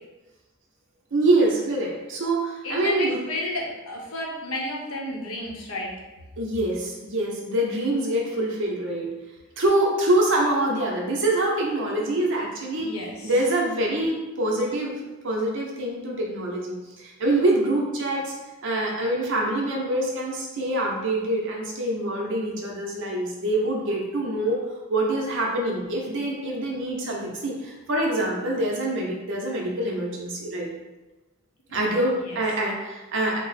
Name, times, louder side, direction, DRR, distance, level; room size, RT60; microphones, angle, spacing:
voice 1, 1.1-3.2 6.4-9.1 9.6-12.9 13.2-18.3 18.6-24.6 24.9-30.7 31.7-33.4, right 1 dB, 60° right, -1 dB, 0.6 m, -25 dB
voice 2, 2.6-5.9 12.8-13.1 31.7-32.4, left 1 dB, 75° left, -1 dB, 0.8 m, -32 dB
2.9 x 2.0 x 4.0 m, 1.1 s
head